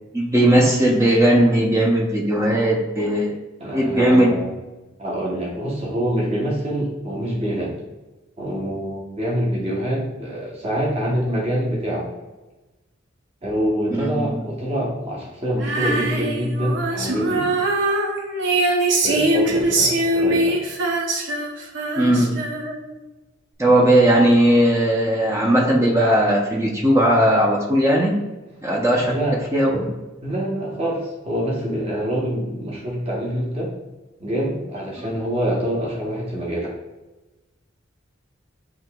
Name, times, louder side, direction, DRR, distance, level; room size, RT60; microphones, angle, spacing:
voice 1, 0.1-3.3 3.7-4.3 13.9-14.4 22.0-22.3 23.6-28.1 28.6-29.1 29.5-29.9, right 1 dB, 15° right, -2 dB, 0.6 m, -17 dB
voice 2, 3.6-4.5 5.0-7.7 8.4-12.1 13.4-17.5 19.0-20.6 29.0-29.4 29.7-29.9 30.2-33.7 34.2-36.7, equal, 30° right, -4 dB, 0.9 m, -25 dB
Female singing, 15.6-23.0, right 2 dB, 60° right, 0.7 m, -22 dB
7.7 x 2.8 x 2.3 m, 1.1 s
head